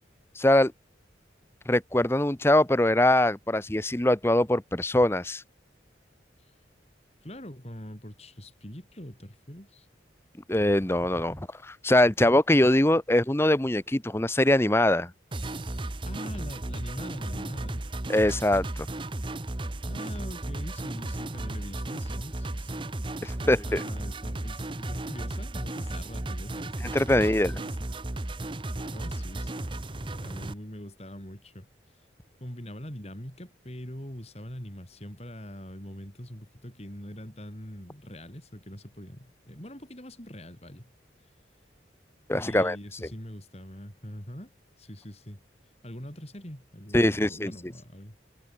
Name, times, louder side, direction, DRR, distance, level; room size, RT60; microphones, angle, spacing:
voice 1, 0.4-0.7 1.7-5.4 10.5-15.1 18.1-18.9 23.2-23.8 26.9-27.5 42.3-42.8 46.9-47.7, left 1 dB, 15° left, 0.8 m, -23 dB
voice 2, 7.2-9.9 16.1-17.9 19.9-22.9 23.4-27.8 28.9-31.7 32.4-40.9 42.3-44.5 44.8-45.4 45.8-48.2, equal, 35° left, 4.7 m, -43 dB
sound 1, 15.3-30.5, right 1 dB, 25° right, 0.9 m, -34 dB
head